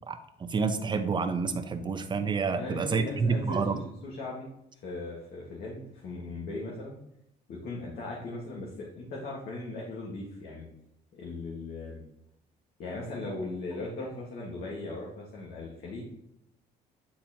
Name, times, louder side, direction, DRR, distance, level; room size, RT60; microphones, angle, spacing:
voice 1, 0.1-3.8, right 5 dB, 25° right, 9 dB, 0.6 m, -29 dB
voice 2, 2.6-3.8 4.0-4.5 4.8-7.0 7.5-10.7 11.1-12.0 12.8-16.0, left 2 dB, 65° left, -4 dB, 1.6 m, -38 dB
8.7 x 4.2 x 2.9 m, 0.79 s
cardioid pair, 110°, 17 cm